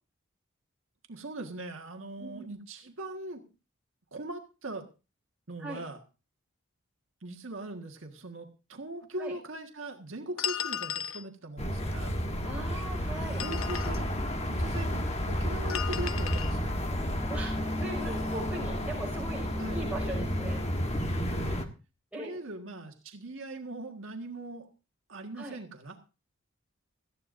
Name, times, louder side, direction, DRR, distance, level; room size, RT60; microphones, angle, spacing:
voice 1, 1.1-3.5 4.1-4.9 5.5-6.0 7.2-12.1 13.4-14.0 14.4-16.8 19.6-19.8 21.3-21.6 22.1-24.7 25.1-26.0, right 2 dB, 75° right, 3 dB, 1.6 m, -40 dB
sound 1, 10.4-11.2 13.2-14.0 15.7-16.5, left 9 dB, 80° left, 0.7 m, -35 dB
sound 2, 11.6-21.7, equal, 30° left, 1.3 m, -31 dB
voice 2, 12.4-13.4 17.3-20.6 22.1-22.4 25.3-25.6, right 1 dB, 5° right, -3 dB, 5.6 m, -39 dB
18.0 x 14.0 x 2.6 m, 0.32 s
head